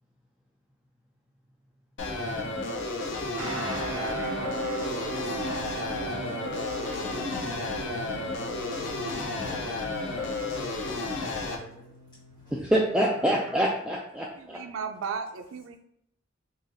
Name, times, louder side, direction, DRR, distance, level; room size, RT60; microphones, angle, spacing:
sound 1, 2.0-11.6, left 3 dB, 65° left, 0.6 m, -32 dB
sound 2, 3.4-13.5, right 5 dB, 70° right, 0.8 m, -39 dB
voice 1, 4.2-7.5 9.0-12.7, equal, 20° left, -9 dB, 0.9 m, -49 dB
voice 2, 12.5-14.6, right 1 dB, 5° right, -3 dB, 0.3 m, -26 dB
voice 3, 14.4-15.8, right 6 dB, 90° right, 7 dB, 0.4 m, -35 dB
3.9 x 2.8 x 2.6 m, 0.71 s
head